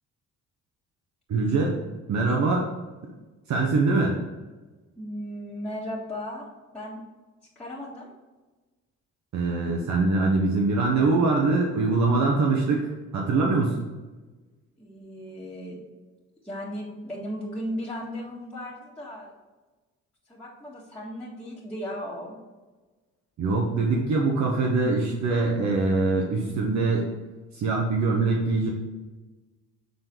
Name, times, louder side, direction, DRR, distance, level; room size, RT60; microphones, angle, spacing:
voice 1, 1.3-1.7 2.1-2.6 3.5-4.2 9.3-13.8 23.4-27.1 27.5-28.7, right 3 dB, 65° right, -1 dB, 1.1 m, -23 dB
voice 2, 5.0-6.5 6.7-7.0 7.6-8.1 14.8-15.8 16.4-19.3 20.3-22.4, equal, 5° left, -9 dB, 1.9 m, -36 dB
7.5 x 4.0 x 4.6 m, 1.2 s
cardioid pair, 90°, 30 cm